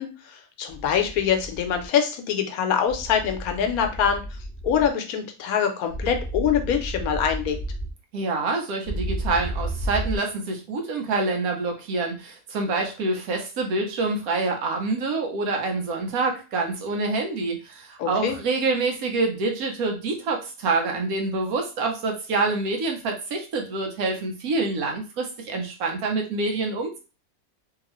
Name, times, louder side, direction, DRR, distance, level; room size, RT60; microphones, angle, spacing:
voice 1, 0.0-4.4 4.6-7.6 18.0-18.4, left 8 dB, 75° left, 5 dB, 1.1 m, -24 dB
sound 1, 0.7-1.9 2.9-4.9 5.9-7.9 8.9-10.2, right 1 dB, 45° right, 0.8 m, -32 dB
voice 2, 8.1-27.0, right 3 dB, 75° right, 3 dB, 1.2 m, -26 dB
2.9 x 2.8 x 3.0 m, 0.32 s
omnidirectional pair, 1.6 m